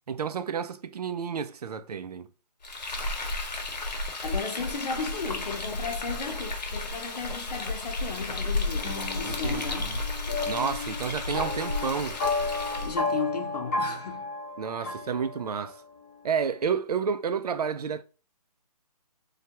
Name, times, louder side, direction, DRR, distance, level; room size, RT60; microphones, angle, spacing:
voice 1, 0.1-2.3 9.2-10.0 10.5-12.2 14.6-15.8 16.2-18.0, right 6 dB, 65° right, 0.4 m, -30 dB
Frying (food), 2.6-13.0, left 2 dB, 85° left, 1.0 m, -33 dB
voice 2, 4.2-9.9 12.7-14.3 14.8-15.0, left 4 dB, 70° left, 0.7 m, -35 dB
sound 1, 8.8-15.8, left 3 dB, 20° left, 0.7 m, -33 dB
3.2 x 2.3 x 2.8 m
hypercardioid pair, 170°, 21 cm